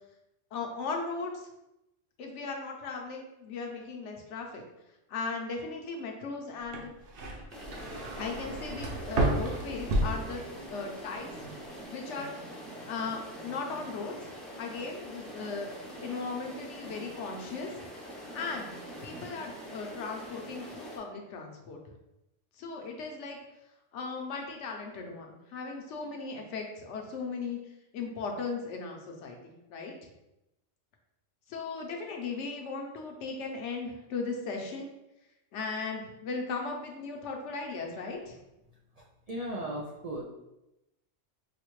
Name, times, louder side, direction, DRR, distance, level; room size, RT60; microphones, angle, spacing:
voice 1, 0.5-1.5 2.2-4.6 5.1-6.9 8.2-10.4 10.7-11.3 11.9-12.3 12.8-14.3 14.6-15.7 16.0-18.7 19.0-22.0 22.6-23.4 23.9-27.6 27.9-30.1 31.5-34.9 35.5-38.4, left 4 dB, 70° left, 2 dB, 0.9 m, -37 dB
sound 1, 6.6-10.9 11.2-11.8, right 1 dB, 60° right, 0.7 m, -32 dB
sound 2, 7.5-21.0, equal, ahead, 0.4 m, -44 dB
voice 2, 39.3-40.2, right 1 dB, 85° right, -3 dB, 0.3 m, -36 dB
4.8 x 2.1 x 3.0 m, 0.91 s
omnidirectional pair, 1.3 m